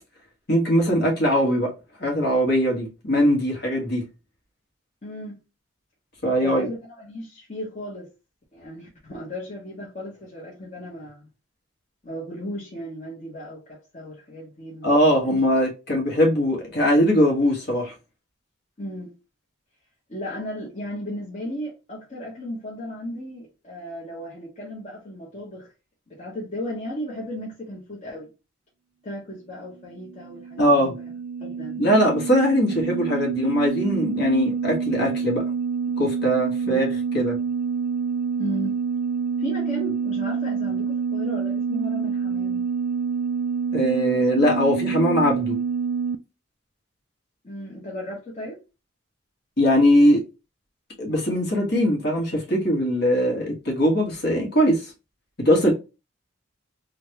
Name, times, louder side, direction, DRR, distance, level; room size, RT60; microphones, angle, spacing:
voice 1, 0.5-1.7 2.0-4.0 6.2-6.7 14.8-17.9 30.6-30.9 31.8-35.4 36.0-36.9 37.1-37.4 43.7-45.6 49.6-50.2 51.0-54.9 55.4-55.7, equal, 50° left, 1.6 m, -21 dB
voice 2, 5.0-5.4 6.4-8.1 8.5-11.3 12.0-14.9 15.2-15.4 18.8-19.1 20.1-25.7 26.1-28.3 29.0-30.9 31.4-31.8 36.7-36.8 38.4-38.8 39.4-42.6 44.1-44.2 47.4-48.6, equal, 35° left, 1.1 m, -35 dB
sound 1, 30.0-46.2, right 6 dB, 45° right, 0.3 m, -27 dB
3.8 x 2.3 x 2.9 m
head